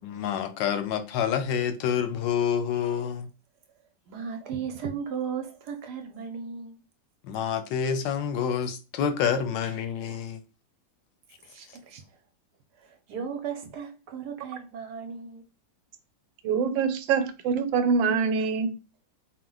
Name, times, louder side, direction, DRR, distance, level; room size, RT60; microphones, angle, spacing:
voice 1, 0.0-3.3 7.2-10.4, left 8 dB, 80° left, 1.2 m, -28 dB
voice 2, 4.1-6.8 11.4-12.0 12.8-15.4, right 6 dB, 65° right, 1.2 m, -36 dB
voice 3, 16.4-18.7, right 5 dB, 85° right, 1.3 m, -24 dB
4.3 x 2.2 x 3.8 m
omnidirectional pair, 2.0 m